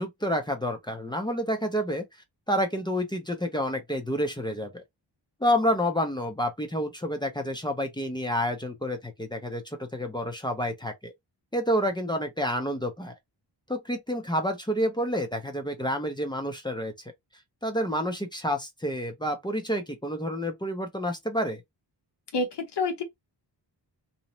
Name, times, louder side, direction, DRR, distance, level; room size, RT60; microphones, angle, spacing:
voice 1, 0.0-2.0 2.5-4.8 5.4-11.1 11.5-13.1 13.7-16.9 17.6-21.6, equal, 10° left, 0.4 m, -29 dB
voice 2, 22.3-23.0, left 3 dB, 65° left, 1.0 m, -28 dB
2.6 x 2.0 x 2.9 m
wide cardioid pair, 180°, 43 cm